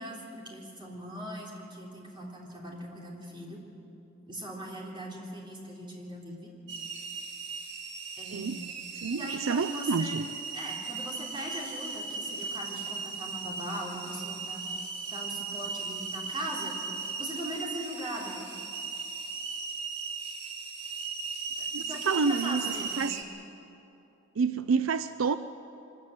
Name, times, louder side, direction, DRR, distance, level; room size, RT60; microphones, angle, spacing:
voice 1, 0.0-3.6 4.3-6.5 8.2-8.7 9.1-10.1 10.5-14.6 15.1-16.8 17.2-18.4 21.6-23.1, right 1 dB, 25° right, -2 dB, 3.5 m, -40 dB
sound 1, 6.7-23.2, right 4 dB, 60° right, 2.1 m, -37 dB
voice 2, 8.3-8.6 9.0-10.3 21.7-23.2 24.4-25.4, right 5 dB, 75° right, 12 dB, 0.5 m, -29 dB
24.0 x 14.5 x 9.5 m, 2.9 s
head